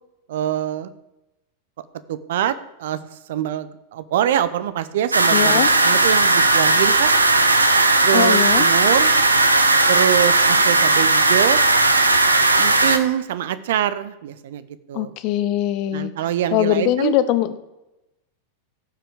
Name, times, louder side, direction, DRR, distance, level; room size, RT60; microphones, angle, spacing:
voice 1, 0.3-0.9 2.1-7.1 8.0-9.1 9.9-11.6 12.6-15.1 15.9-17.1, right 10 dB, 55° right, 15 dB, 0.7 m, -24 dB
sound 1, 5.1-13.0, right 2 dB, 80° right, 0.8 m, -16 dB
voice 2, 5.3-5.7 8.1-8.7 14.9-16.1 16.5-17.6, left 13 dB, 40° left, 13 dB, 0.8 m, -21 dB
16.0 x 6.0 x 4.9 m, 0.95 s
figure-of-eight pair, 90°, 0 cm